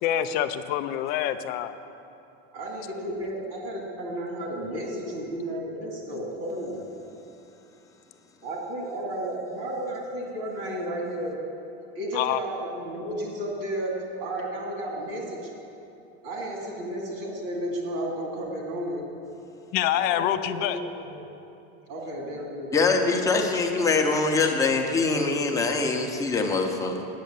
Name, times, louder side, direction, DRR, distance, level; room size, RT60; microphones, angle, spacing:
voice 1, 0.0-1.7 5.8-6.0 12.1-12.4 19.7-20.8, left 11 dB, 35° left, 11 dB, 0.4 m, -26 dB
voice 2, 2.5-6.8 8.4-11.4 11.9-13.9 14.2-15.5 16.2-19.1 19.9-21.3 21.9-23.0, right 1 dB, 75° right, -1 dB, 2.4 m, -33 dB
voice 3, 22.7-27.1, left 3 dB, 10° left, 2 dB, 0.7 m, -23 dB
9.3 x 6.5 x 8.7 m, 2.8 s
supercardioid pair, 165°, 30 cm